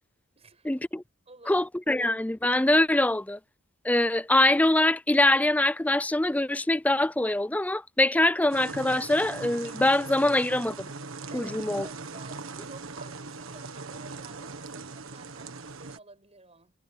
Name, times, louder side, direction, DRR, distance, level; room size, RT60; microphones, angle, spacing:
voice 1, 0.4-0.9 1.3-2.0 11.3-16.7, right 3 dB, 30° right, 7.2 m, -52 dB
voice 2, 1.5-3.4 3.8-10.9 11.3-11.9, left 1 dB, 5° left, 0.5 m, -23 dB
sound 1, 8.5-16.0, right 4 dB, 80° right, 1.5 m, -40 dB
head